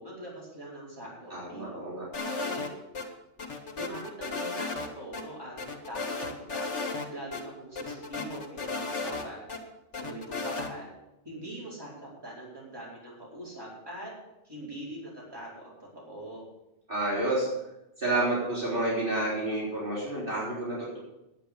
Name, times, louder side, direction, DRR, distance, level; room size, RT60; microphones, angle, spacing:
voice 1, 0.0-1.7 2.2-2.7 3.7-5.5 5.9-6.7 7.1-9.4 9.9-10.9 11.2-14.1 14.4-16.5, right 1 dB, 20° right, -6 dB, 4.8 m, -42 dB
voice 2, 1.3-2.1 16.9-17.5 18.0-21.0, right 2 dB, 50° right, -7 dB, 4.2 m, -29 dB
sound 1, 2.1-3.1 3.4-4.9 5.1-5.2 5.6-7.1 7.3-7.4 7.8-9.6 9.9-10.7, left 3 dB, 80° left, 2.0 m, -34 dB
10.5 x 8.7 x 8.5 m, 0.91 s
omnidirectional pair, 1.2 m